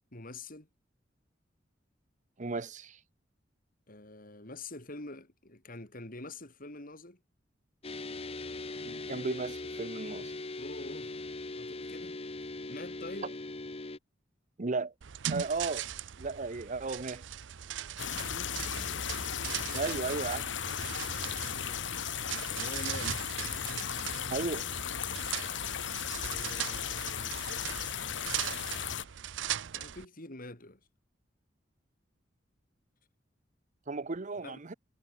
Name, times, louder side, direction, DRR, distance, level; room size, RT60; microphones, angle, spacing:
voice 1, 0.1-0.7 3.9-7.2 10.6-11.1 11.5-12.2 12.7-13.3 18.1-18.7 22.5-23.2 26.2-29.0 29.7-30.8 34.4-34.6, left 2 dB, 50° left, 4.9 m, -46 dB
voice 2, 2.4-3.0 8.8-10.3 14.6-14.9 15.3-15.9 16.2-17.2 19.7-20.5 24.3-24.7 33.9-34.7, right 3 dB, 40° right, 0.8 m, -35 dB
sound 1, 7.8-14.0, left 2 dB, 35° left, 1.0 m, -40 dB
sound 2, 15.0-30.0, right 10 dB, 85° right, 0.6 m, -40 dB
sound 3, 18.0-29.0, left 8 dB, 85° left, 1.4 m, -36 dB
head